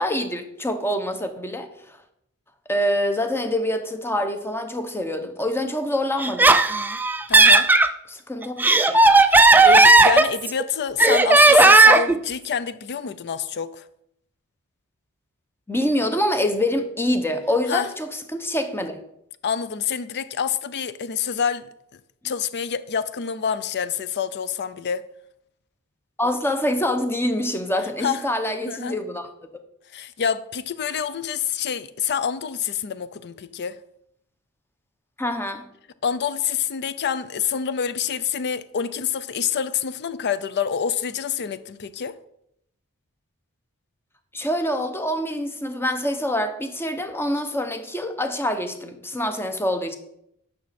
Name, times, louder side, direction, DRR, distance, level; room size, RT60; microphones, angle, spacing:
voice 1, 0.0-1.7 2.7-6.6 8.1-9.1 15.7-19.0 26.2-29.3 35.2-35.6 44.3-50.0, left 1 dB, 10° left, 0.8 m, -25 dB
Laughter, 6.2-7.9 8.4-10.6 11.0-12.1, right 3 dB, 10° right, 0.3 m, -14 dB
voice 2, 7.3-7.7 9.2-13.8 17.7-17.9 19.4-21.7 22.2-25.0 28.0-28.2 28.6-29.0 29.9-33.8 36.0-42.1, left 7 dB, 50° left, 0.5 m, -27 dB
9.5 x 5.9 x 4.2 m
head